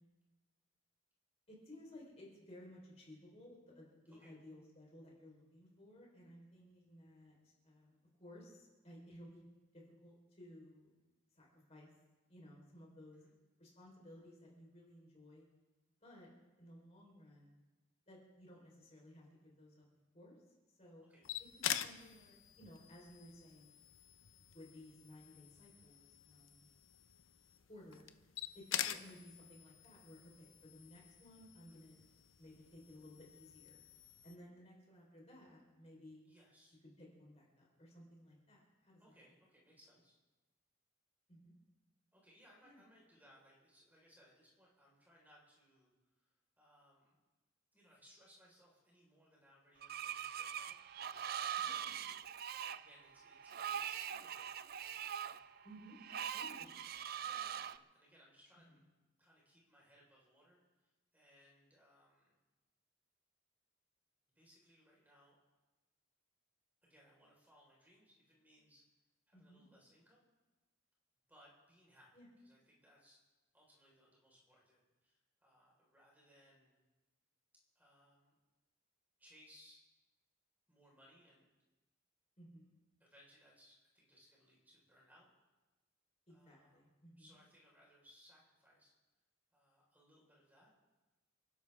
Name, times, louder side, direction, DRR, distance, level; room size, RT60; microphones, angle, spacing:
voice 1, 1.5-7.3 7.6-9.4 9.7-10.9 11.4-11.9 12.3-13.2 13.6-15.4 16.0-16.3 16.6-17.5 18.1-19.8 20.1-20.4 20.8-21.0 21.6-23.7 24.5-26.7 27.7-28.0 28.5-32.0 32.4-33.8 34.2-36.3 37.0-39.0 41.3-41.5 42.6-42.8 51.6-52.0 55.6-56.0 56.3-56.9 69.3-69.6 72.1-72.3 82.4-82.7 86.3-87.4, left 1 dB, 30° left, -2 dB, 4.4 m, -58 dB
sound 1, 21.2-34.4, left 10 dB, 75° left, 0.8 m, -46 dB
voice 2, 36.2-36.8 39.0-40.2 42.1-45.9 46.6-47.2 47.7-52.0 52.7-55.6 57.1-58.8 59.2-62.3 64.3-65.4 66.8-68.8 69.3-70.3 71.3-72.1 72.4-73.2 73.5-76.8 77.7-78.4 79.2-79.8 80.7-81.5 83.0-85.3 86.3-86.9 87.2-88.9 89.5-90.7, equal, 10° right, -4 dB, 4.8 m, -66 dB
Screech, 49.8-57.8, right 9 dB, 50° right, 0.4 m, -43 dB
29.0 x 12.0 x 3.7 m, 1.1 s
head